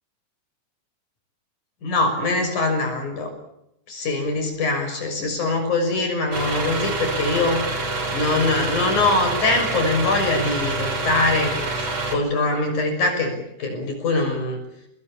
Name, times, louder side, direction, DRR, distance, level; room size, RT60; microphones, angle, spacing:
voice 1, 1.8-3.3 3.9-7.6 8.1-14.6, left 3 dB, 65° left, 4 dB, 7.7 m, -23 dB
sound 1, 6.3-12.2, right 3 dB, 50° right, 6.0 m, -26 dB
25.0 x 20.0 x 8.7 m, 0.81 s
omnidirectional pair, 3.7 m